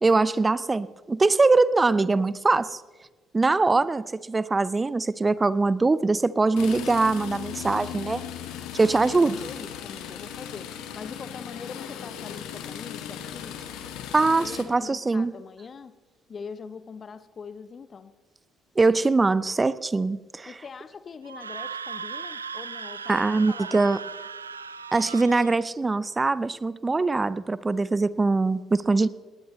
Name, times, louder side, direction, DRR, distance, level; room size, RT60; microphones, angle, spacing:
voice 1, 0.0-2.8 3.3-8.2 8.7-9.4 14.1-15.3 18.8-20.5 23.1-24.0 24.9-29.1, right 3 dB, 25° right, 17 dB, 0.7 m, -22 dB
sound 1, 6.6-14.7, left 9 dB, 65° left, 1.5 m, -37 dB
voice 2, 8.8-10.7 10.9-13.6 14.3-15.9 16.3-18.1 20.5-23.2 23.5-23.9, left 5 dB, 40° left, 13 dB, 0.8 m, -42 dB
Screaming, 21.3-25.6, right 6 dB, 85° right, 0.4 m, -37 dB
19.0 x 19.0 x 3.2 m, 1.3 s
figure-of-eight pair, 50°, 0 cm